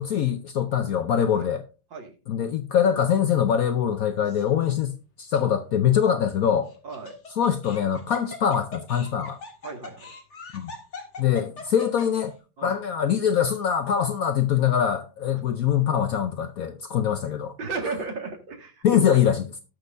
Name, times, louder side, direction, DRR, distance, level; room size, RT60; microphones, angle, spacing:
voice 1, 0.0-1.6 2.3-6.7 7.4-9.4 10.5-10.7 11.2-12.3 12.6-17.5 18.8-19.4, left 9 dB, 65° left, 0.9 m, -23 dB
Laughter, 4.2-4.7 5.3-5.4 6.7-12.3, left 3 dB, 40° left, 2.0 m, -41 dB
voice 2, 6.8-7.1 9.6-10.1 12.6-12.8 17.6-19.0, right 4 dB, 75° right, 2.7 m, -34 dB
18.0 x 6.3 x 2.6 m
omnidirectional pair, 2.1 m